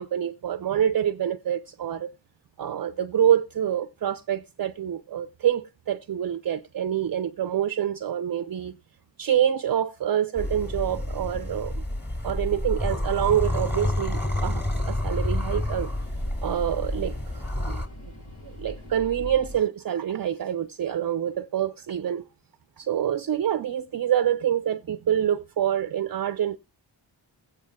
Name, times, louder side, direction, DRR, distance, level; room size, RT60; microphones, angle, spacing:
voice 1, 0.0-2.1 2.6-8.8 9.2-11.8 12.2-15.9 16.4-17.2 17.7-17.8 18.4-22.3 22.8-26.6, right 10 dB, 45° right, 0.5 m, -26 dB
sound 1, 10.4-17.9, left 1 dB, 20° left, 2.3 m, -29 dB
sound 2, 13.3-19.6, left 1 dB, 75° left, 3.9 m, -41 dB
20.5 x 8.6 x 2.2 m
cardioid pair, 45°, 48 cm